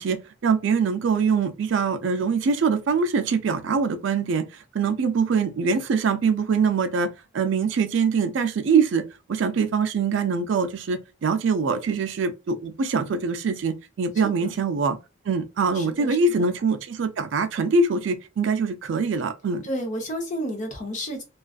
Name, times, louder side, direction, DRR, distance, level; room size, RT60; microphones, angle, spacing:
voice 1, 0.0-9.0 9.3-15.0 15.3-19.6, right 5 dB, 65° right, 0.4 m, -23 dB
voice 2, 14.2-14.5 15.7-16.4 19.6-21.2, equal, 40° left, 0.7 m, -31 dB
2.4 x 2.3 x 2.3 m
head